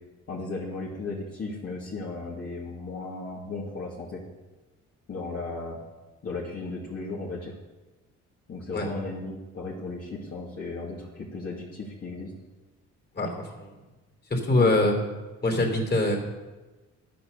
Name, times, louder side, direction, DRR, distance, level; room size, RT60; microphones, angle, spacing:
voice 1, 0.3-4.2 5.1-5.8 6.2-7.5 8.5-12.3 14.5-14.7, left 3 dB, 50° left, -6 dB, 2.4 m, -35 dB
voice 2, 13.1-13.7 14.3-15.0 15.4-16.2, left 2 dB, 35° left, 2 dB, 3.3 m, -23 dB
11.5 x 8.6 x 6.7 m, 1.2 s
cardioid pair, 90°, 30 cm